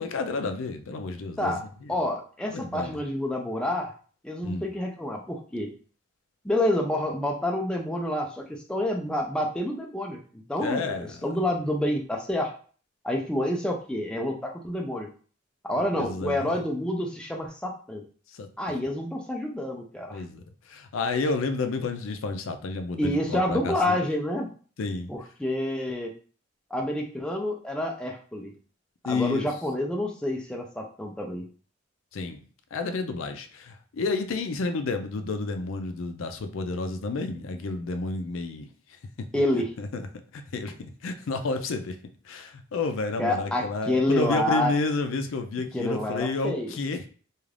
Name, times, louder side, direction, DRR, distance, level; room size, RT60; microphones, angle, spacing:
voice 1, 0.0-2.1 2.5-3.0 4.4-4.7 10.6-11.1 15.8-16.5 18.3-18.8 20.1-24.0 24.8-25.1 29.0-29.5 32.1-32.4 32.7-38.7 39.8-40.0 40.3-40.7 41.0-42.0 42.2-47.1, left 3 dB, 85° left, 7 dB, 0.4 m, -30 dB
voice 2, 1.9-3.9 4.2-5.7 6.4-12.5 13.0-15.1 15.6-18.0 18.6-20.2 23.0-24.5 25.1-26.1 26.7-28.5 29.0-31.4 39.3-39.7 43.2-44.7 45.7-46.7, left 1 dB, 5° left, 0 dB, 0.4 m, -28 dB
2.4 x 2.4 x 3.2 m, 0.41 s
head